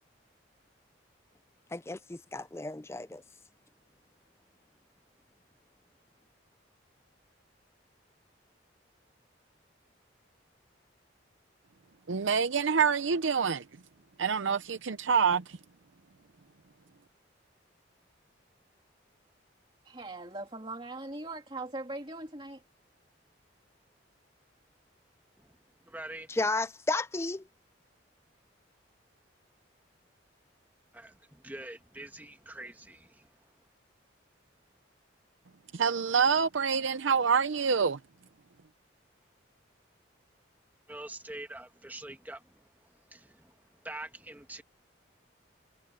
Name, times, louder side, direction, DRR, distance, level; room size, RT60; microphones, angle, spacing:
voice 1, 1.7-3.2 26.3-27.4, left 2 dB, 15° left, 0.4 m, -33 dB
voice 2, 12.1-13.6 14.2-15.4 35.7-38.0, right 6 dB, 80° right, 0.6 m, -26 dB
voice 3, 19.8-22.6, right 2 dB, 25° right, 2.8 m, -40 dB
voice 4, 25.4-26.4 30.9-33.5 40.9-44.6, right 1 dB, 10° right, 1.6 m, -45 dB
head